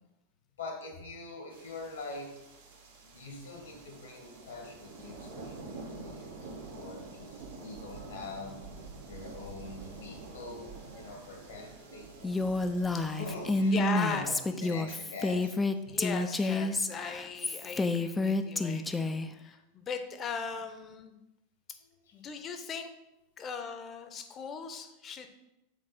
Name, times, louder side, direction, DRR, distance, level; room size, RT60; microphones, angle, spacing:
voice 1, 0.6-2.4 2.9-12.5 12.8-13.8 14.1-16.0 19.3-19.6 21.8-22.2 23.4-23.5, left 3 dB, 70° left, 2 dB, 1.6 m, -44 dB
sound 1, 1.5-14.2, right 3 dB, 70° right, 1.5 m, -47 dB
Female speech woman speaking, 12.2-19.3, left 2 dB, 10° left, 0.4 m, -29 dB
voice 2, 13.7-14.3 15.9-21.2 22.1-22.9 23.4-25.3, left 6 dB, 30° left, 7 dB, 0.8 m, -38 dB
7.4 x 4.0 x 4.2 m, 0.92 s
figure-of-eight pair, 85°, 0 cm